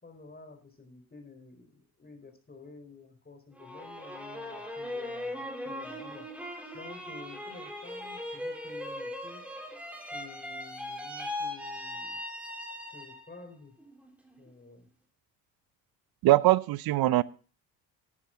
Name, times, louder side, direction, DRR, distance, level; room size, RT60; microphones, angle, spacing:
voice 1, 0.0-6.3 6.7-9.5 10.1-12.2 12.9-13.7 14.4-14.9, left 3 dB, 25° left, 4 dB, 4.2 m, -50 dB
sound 1, 3.6-13.4 13.8-14.5, left 1 dB, 5° right, 3.5 m, -39 dB
voice 2, 16.2-17.2, right 17 dB, 60° right, 19 dB, 0.7 m, -22 dB
12.5 x 9.8 x 3.8 m, 0.38 s
supercardioid pair, 65°, 41 cm